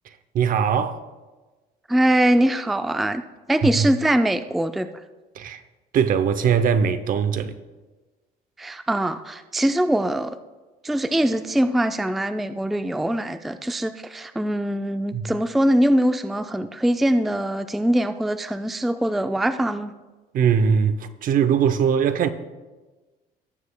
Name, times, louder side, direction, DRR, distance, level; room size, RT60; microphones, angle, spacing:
voice 1, 0.3-1.0 3.6-3.9 5.4-5.6 5.9-7.6 15.1-15.3 20.3-22.3, right 7 dB, 55° right, 0.6 m, -21 dB
voice 2, 1.9-3.2 3.5-4.9 8.6-10.3 10.8-19.9, right 1 dB, ahead, 0.3 m, -22 dB
18.0 x 7.2 x 2.2 m
cardioid pair, 110°, 17 cm